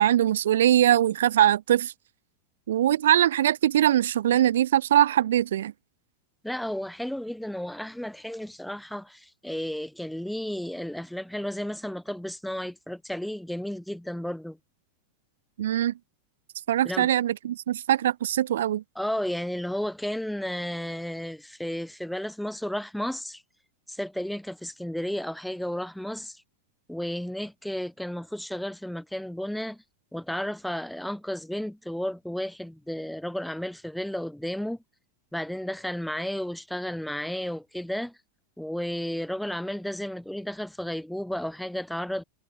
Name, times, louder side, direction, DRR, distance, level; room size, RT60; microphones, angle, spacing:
voice 1, 0.0-1.9 2.7-5.7 15.6-15.9 16.7-18.8, right 11 dB, 60° right, 0.8 m, -22 dB
voice 2, 6.4-14.6 16.8-17.1 18.9-23.4 23.9-26.4 26.9-29.8 30.1-34.8 35.3-38.2 38.6-42.2, equal, ahead, 1.0 m, -33 dB
figure-of-eight pair, 90°, 0 cm